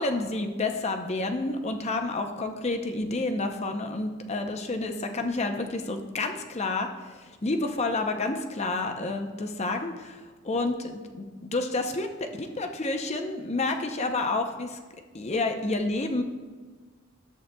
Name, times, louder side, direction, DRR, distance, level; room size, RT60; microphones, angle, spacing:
voice 1, 0.0-14.8 15.1-16.2, left 2 dB, 30° left, 5 dB, 0.6 m, -29 dB
13.0 x 8.0 x 2.2 m, 1.4 s
head